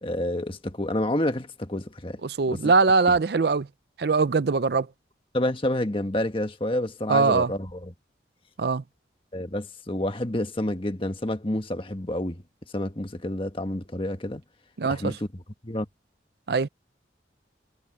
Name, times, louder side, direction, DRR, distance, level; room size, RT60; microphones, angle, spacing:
voice 1, 0.0-2.2 2.5-2.7 3.1-3.2 5.3-7.9 9.3-12.4 12.7-14.4 14.9-15.8, left 1 dB, 30° left, 1.5 m, -29 dB
voice 2, 2.2-3.7 4.0-4.9 7.1-7.5 8.6-8.8 14.8-15.1 16.5-16.7, right 4 dB, 60° right, 0.5 m, -22 dB
head